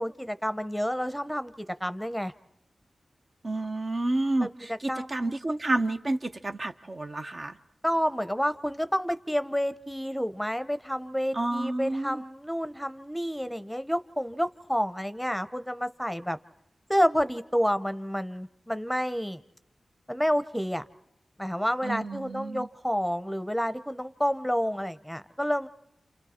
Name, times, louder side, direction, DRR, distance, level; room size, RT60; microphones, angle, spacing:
voice 1, 0.0-2.3 4.4-5.3 7.8-16.4 16.9-19.4 20.1-20.8 21.4-25.7, equal, ahead, 12 dB, 0.8 m, -29 dB
voice 2, 3.4-7.6 11.3-12.2 21.8-22.7, right 2 dB, 50° right, 6 dB, 0.9 m, -30 dB
29.0 x 27.5 x 4.4 m, 0.81 s
cardioid pair, 45°, 0 cm